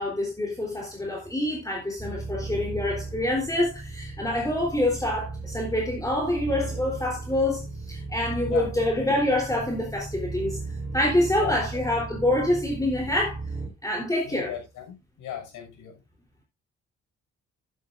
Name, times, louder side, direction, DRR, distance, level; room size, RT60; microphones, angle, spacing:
voice 1, 0.0-10.6 10.9-13.4 13.8-14.5, left 1 dB, 10° left, 3.5 m, -26 dB
sound 1, 2.0-13.7, right 3 dB, 5° right, 3.6 m, -36 dB
voice 2, 14.3-15.9, left 9 dB, 90° left, 5.5 m, -37 dB
11.5 x 10.5 x 2.5 m
cardioid pair, 90°, 30 cm